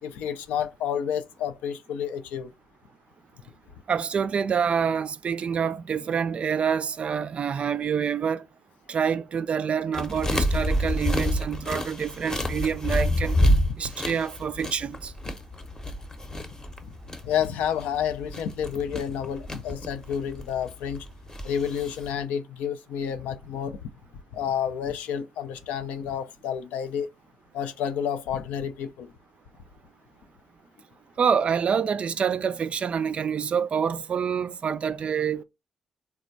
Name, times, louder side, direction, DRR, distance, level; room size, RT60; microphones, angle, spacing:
voice 1, 0.0-2.5 12.4-12.5 16.5-16.6 17.2-21.1 21.4-23.9 24.3-27.1 27.5-29.1, left 8 dB, 75° left, 0.4 m, -30 dB
voice 2, 3.9-8.4 8.9-13.4 13.8-15.1 31.2-35.4, right 7 dB, 50° right, 0.3 m, -27 dB
sound 1, 9.9-22.1, left 1 dB, 25° left, 0.8 m, -28 dB
3.3 x 2.1 x 2.6 m
hypercardioid pair, 45°, 3 cm